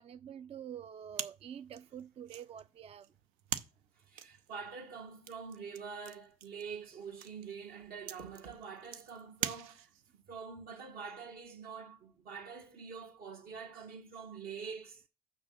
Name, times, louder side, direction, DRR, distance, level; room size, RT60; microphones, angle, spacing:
voice 1, 0.0-3.1, right 9 dB, 35° right, 0.4 m, -47 dB
sound 1, 1.1-10.2, right 10 dB, 80° right, 0.7 m, -44 dB
voice 2, 4.0-15.0, right 5 dB, 65° right, 2.0 m, -46 dB
6.1 x 5.3 x 5.7 m
hypercardioid pair, 70°, 17 cm